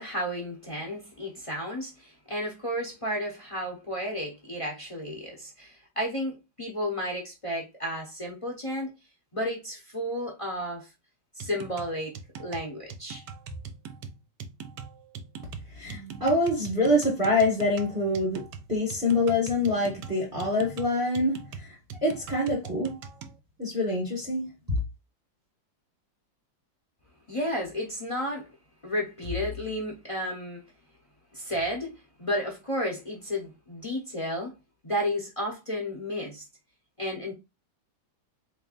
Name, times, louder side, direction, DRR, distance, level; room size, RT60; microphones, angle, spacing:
voice 1, 0.0-8.9 9.3-10.9 11.4-13.2 27.3-28.5 28.8-30.6 31.3-31.9 32.2-34.5 34.8-36.4 37.0-37.3, equal, 60° left, 0.3 m, -32 dB
sound 1, 11.4-23.4, right 6 dB, 75° right, 1.1 m, -42 dB
voice 2, 15.7-23.0 23.6-24.8, left 1 dB, 15° right, 0.9 m, -26 dB
4.0 x 3.3 x 2.4 m
omnidirectional pair, 2.1 m